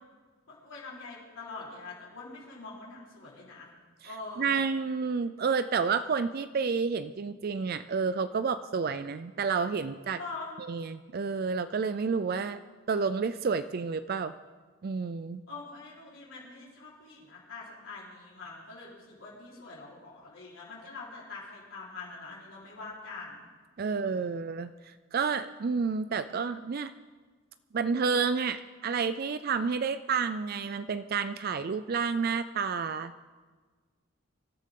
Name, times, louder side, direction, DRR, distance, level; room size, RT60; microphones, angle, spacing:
voice 1, 0.5-3.7 4.0-4.6 10.1-10.5 15.5-23.5 23.8-24.4, left 3 dB, 70° left, -6 dB, 4.2 m, -44 dB
voice 2, 4.4-10.2 10.7-12.6 12.9-14.3 14.8-15.4 23.8-24.7 25.1-26.9 27.7-33.1, right 5 dB, 45° right, 12 dB, 0.4 m, -30 dB
24.5 x 13.5 x 3.8 m, 1.4 s
head